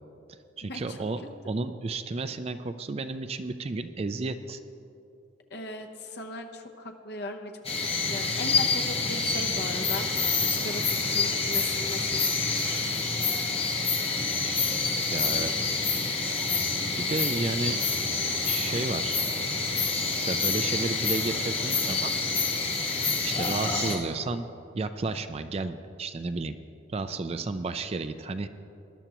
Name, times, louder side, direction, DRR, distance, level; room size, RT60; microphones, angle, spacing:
voice 1, 0.6-4.6 14.4-15.5 17.0-17.8 18.4-19.2 20.2-22.1 23.2-24.5 24.7-26.5 26.9-28.5, right 3 dB, 30° right, 10 dB, 0.4 m, -32 dB
voice 2, 5.5-7.5 7.9-10.1 10.5-12.2, left 2 dB, 55° left, 4 dB, 0.8 m, -38 dB
sound 1, 7.6-24.0, left 4 dB, 30° left, 1.4 m, -27 dB
20.0 x 11.0 x 3.0 m, 2.7 s
head